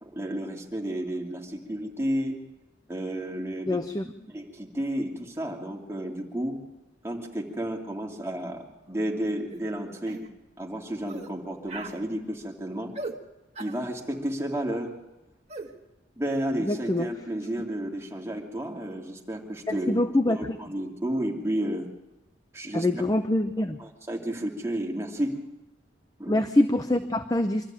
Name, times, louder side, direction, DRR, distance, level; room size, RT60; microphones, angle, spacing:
voice 1, 0.0-2.4 2.9-3.8 4.3-6.6 7.0-10.2 10.6-12.9 13.6-15.0 16.2-20.0 20.3-21.9 22.5-23.0 23.8-25.4 26.2-26.3, right 1 dB, 15° right, -1 dB, 2.6 m, -32 dB
voice 2, 3.7-4.1 16.6-17.1 19.7-20.6 22.7-23.8 26.3-27.7, left 1 dB, 20° left, 8 dB, 0.7 m, -25 dB
sound 1, 9.5-9.7 10.1-10.3 11.1-11.3 11.7-12.0 12.9-13.2 13.5-13.8 15.5-15.7, right 2 dB, 35° right, 1.7 m, -38 dB
25.0 x 13.5 x 8.9 m, 0.99 s
head